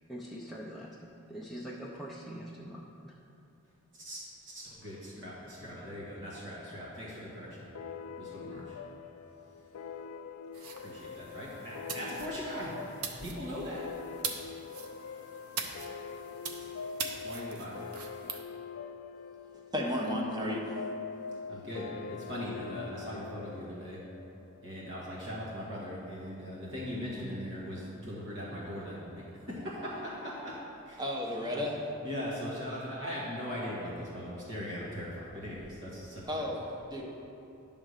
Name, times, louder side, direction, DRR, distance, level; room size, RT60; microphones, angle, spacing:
voice 1, 0.1-3.2, equal, ahead, -5 dB, 0.5 m, -43 dB
voice 2, 3.9-7.6 8.2-8.8 10.8-12.7 13.2-13.8 17.2-17.7 21.5-24.0 24.6-30.6 30.9-31.0 31.5-31.6 32.0-36.2, equal, 60° right, -7 dB, 1.8 m, -40 dB
sound 1, 7.7-24.8, left 6 dB, 70° left, 0.3 m, -43 dB
sound 2, 10.5-18.4, right 5 dB, 85° right, 0.8 m, -42 dB
voice 3, 19.7-20.7 31.0-31.8 36.3-37.0, left 1 dB, 20° right, -2 dB, 1.0 m, -33 dB
10.5 x 3.7 x 6.5 m, 2.7 s
head